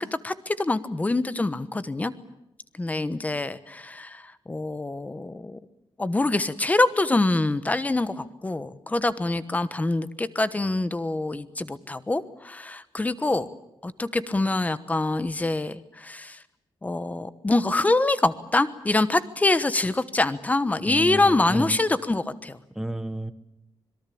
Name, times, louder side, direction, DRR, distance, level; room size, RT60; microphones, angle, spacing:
voice 1, 0.0-2.1 2.8-5.6 6.0-13.5 13.8-16.4 16.8-22.6, left 2 dB, 15° left, 14 dB, 1.1 m, -25 dB
voice 2, 20.8-21.8 22.7-23.3, right 1 dB, 5° right, 11 dB, 1.3 m, -31 dB
25.5 x 22.5 x 8.6 m, 0.87 s
wide cardioid pair, 165°, 9 cm